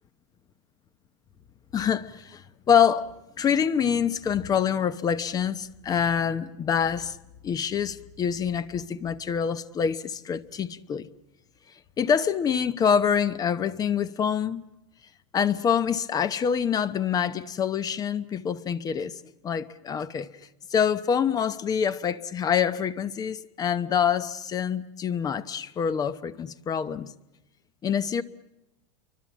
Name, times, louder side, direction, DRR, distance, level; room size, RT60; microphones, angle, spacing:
voice 1, 1.7-3.1 3.4-7.2 7.4-11.1 12.0-14.6 15.3-19.1 19.4-20.3 20.7-27.1 27.8-28.2, left 7 dB, 20° left, 0.9 m, -26 dB
29.5 x 24.5 x 7.3 m
supercardioid pair, 140°, 18 cm